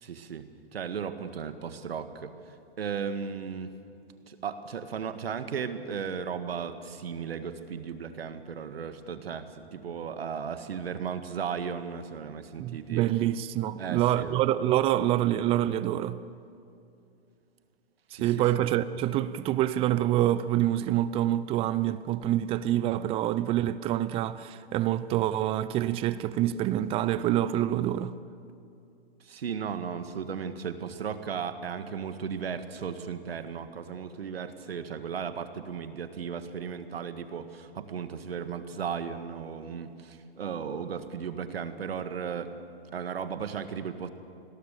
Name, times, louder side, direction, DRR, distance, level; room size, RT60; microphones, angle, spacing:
voice 1, 0.0-2.3 2.8-3.7 4.3-13.0 13.8-14.4 18.1-18.4 29.2-42.5 42.9-44.1, right 7 dB, 70° right, 1.9 m, -35 dB
voice 2, 12.6-16.2 18.1-28.2, right 13 dB, 20° right, 0.5 m, -26 dB
29.5 x 21.0 x 6.9 m
hypercardioid pair, 125°, 31 cm